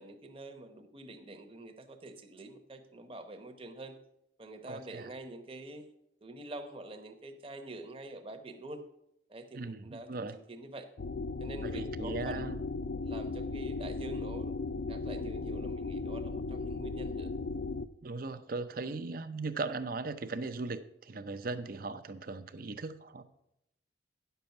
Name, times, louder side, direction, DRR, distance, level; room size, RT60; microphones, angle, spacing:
voice 1, 0.0-4.0 4.4-5.8 6.2-8.8 9.3-10.9 11.4-12.6 13.0-14.5 14.9-17.3 18.8-19.0, right 2 dB, 30° right, 7 dB, 1.0 m, -46 dB
voice 2, 4.7-5.1 9.5-10.4 11.6-12.6 18.0-23.2, right 3 dB, 50° right, 11 dB, 0.6 m, -38 dB
sound 1, 11.0-17.9, left 3 dB, 55° left, 0.4 m, -36 dB
10.0 x 6.9 x 5.8 m, 0.81 s
head